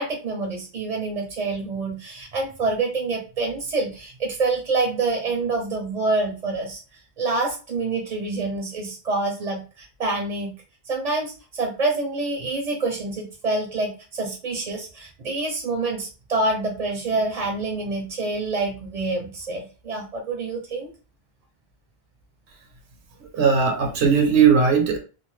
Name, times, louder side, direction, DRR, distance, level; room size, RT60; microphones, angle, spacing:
voice 1, 0.0-6.8 7.2-10.5 10.9-20.9, right 3 dB, 45° right, 1 dB, 0.6 m, -27 dB
voice 2, 23.3-25.0, right 6 dB, 85° right, 3 dB, 0.9 m, -18 dB
2.5 x 2.4 x 3.1 m, 0.34 s
omnidirectional pair, 1.1 m